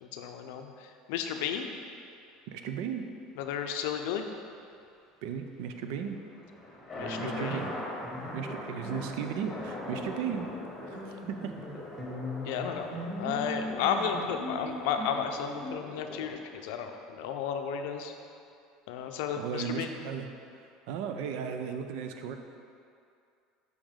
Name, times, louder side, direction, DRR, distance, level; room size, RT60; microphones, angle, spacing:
voice 1, 0.0-1.7 3.4-4.3 6.9-7.6 12.5-12.9 13.2-18.1 18.9-19.9, left 7 dB, 75° left, 5 dB, 0.5 m, -33 dB
voice 2, 2.5-3.1 5.2-6.2 7.2-7.8 8.3-10.5 11.0-11.5 19.4-20.3 20.5-22.4, right 7 dB, 70° right, 6 dB, 0.5 m, -35 dB
sound 1, 6.1-16.3, left 1 dB, 15° left, 1.4 m, -42 dB
sound 2, 7.0-10.2 10.5-15.7, equal, 10° right, 1.3 m, -41 dB
6.2 x 5.2 x 3.6 m, 2.5 s
cardioid pair, 160°, 0 cm